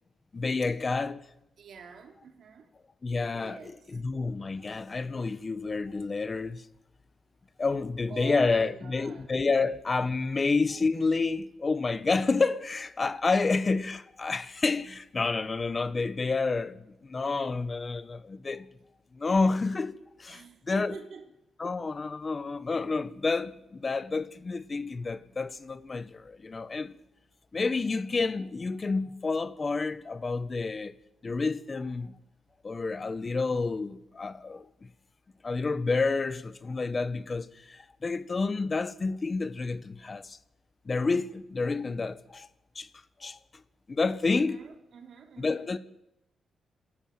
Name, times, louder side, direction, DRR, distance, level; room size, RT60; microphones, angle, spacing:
voice 1, 0.3-1.2 3.0-6.7 7.6-18.7 19.1-21.0 21.6-26.9 27.5-30.9 31.2-32.2 32.6-34.9 35.4-40.4 40.8-42.5 42.7-42.9 43.2-43.4 43.9-44.6 45.4-45.8, left 4 dB, 30° left, 1.2 m, -29 dB
voice 2, 1.6-2.7 3.3-4.0 8.1-9.3 20.3-21.3 44.2-45.8, right 6 dB, 65° right, 3.3 m, -47 dB
27.5 x 13.5 x 9.1 m
cardioid pair, 110°, 0 cm